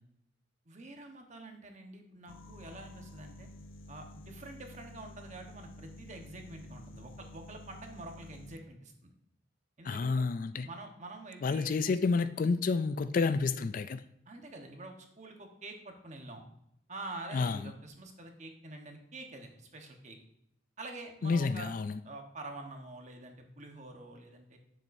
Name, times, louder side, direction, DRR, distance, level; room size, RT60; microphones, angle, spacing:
voice 1, 0.7-3.5 3.9-9.1 9.8-10.3 10.6-12.0 14.3-16.4 16.9-20.2 20.8-21.7 22.0-24.6, right 2 dB, 35° right, 1.1 m, -47 dB
sound 1, 2.3-8.6, left 1 dB, 80° left, 0.7 m, -50 dB
voice 2, 9.8-10.7 11.4-14.0 17.3-17.6 21.2-22.0, left 4 dB, 45° left, 0.3 m, -29 dB
9.5 x 7.4 x 2.6 m
head